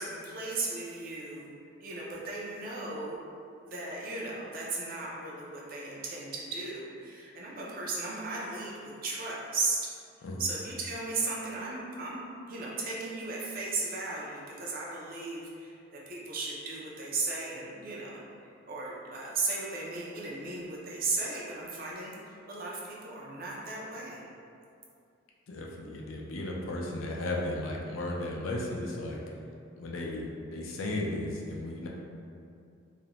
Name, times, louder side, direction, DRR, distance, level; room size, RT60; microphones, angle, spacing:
voice 1, 0.0-1.5 1.8-3.2 3.6-9.8 10.4-12.2 12.5-15.7 16.1-18.2 18.7-24.2, right 3 dB, 45° right, -4 dB, 0.4 m, -36 dB
voice 2, 25.5-29.2 29.8-31.9, left 1 dB, 85° left, -2 dB, 0.4 m, -35 dB
2.5 x 2.1 x 2.9 m, 2.4 s
head